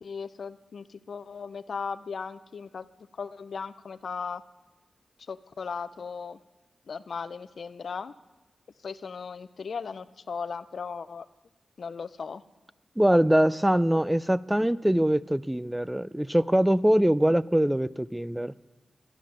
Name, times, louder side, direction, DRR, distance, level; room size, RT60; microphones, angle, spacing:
voice 1, 0.0-2.9 3.1-4.4 5.3-6.4 6.9-8.1 8.8-11.3 11.8-12.4, left 5 dB, 75° left, 13 dB, 0.5 m, -37 dB
voice 2, 13.0-18.5, right 1 dB, 10° right, 17 dB, 0.4 m, -23 dB
12.0 x 11.5 x 6.2 m, 1.1 s
cardioid pair, 45°, 0 cm